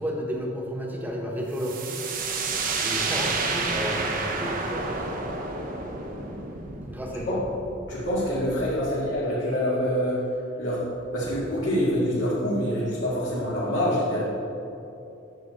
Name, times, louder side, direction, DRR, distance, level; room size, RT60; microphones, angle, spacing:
voice 1, 0.0-2.0 2.7-5.2 6.9-7.4 8.8-9.0, equal, 10° right, -1 dB, 1.1 m, -32 dB
sound 1, 1.6-9.2, right 3 dB, 45° right, 0.8 m, -30 dB
voice 2, 7.9-10.3 10.6-10.8 11.1-14.2, equal, 80° left, -10 dB, 2.0 m, -26 dB
9.0 x 6.9 x 4.1 m, 2.8 s
head